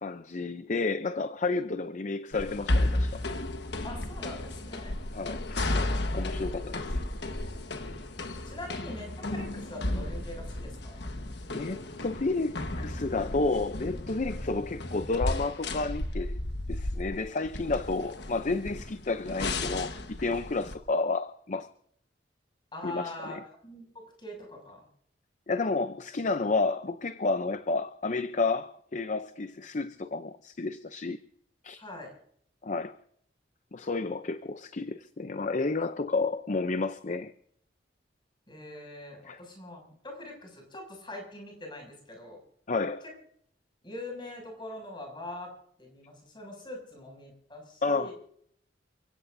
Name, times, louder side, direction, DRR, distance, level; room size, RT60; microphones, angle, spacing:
voice 1, 0.0-3.2 5.1-7.0 11.5-16.4 16.7-21.7 22.8-23.4 25.5-31.2 31.6-31.8 32.6-33.0 33.7-37.3 39.2-39.4 42.7-43.0 47.8-48.1, left 3 dB, 40° left, 0.6 m, -31 dB
sound 1, 2.3-20.8, left 1 dB, 65° left, 1.4 m, -33 dB
voice 2, 3.8-5.0 5.9-6.4 8.4-11.1 22.7-24.8 31.8-32.1 38.5-42.4 43.8-45.5 45.8-48.1, left 1 dB, 25° left, 6.6 m, -43 dB
29.5 x 16.5 x 2.7 m
head